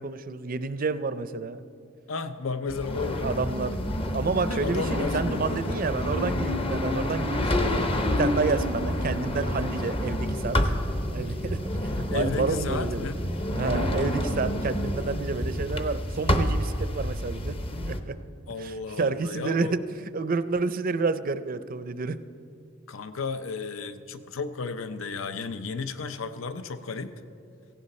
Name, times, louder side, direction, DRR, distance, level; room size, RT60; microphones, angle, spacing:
voice 1, 0.0-1.6 3.2-3.8 4.1-7.8 8.2-10.7 11.1-13.1 13.5-17.6 17.8-18.2 18.6-19.8 20.1-22.2, right 4 dB, 45° right, 13 dB, 0.5 m, -29 dB
voice 2, 2.1-3.3 4.3-5.8 12.1-13.2 18.5-19.7 22.9-27.1, left 4 dB, 75° left, 10 dB, 0.7 m, -33 dB
sound 1, 2.7-18.0, left 1 dB, 25° left, 0.8 m, -28 dB
17.5 x 15.5 x 4.2 m, 2.5 s
head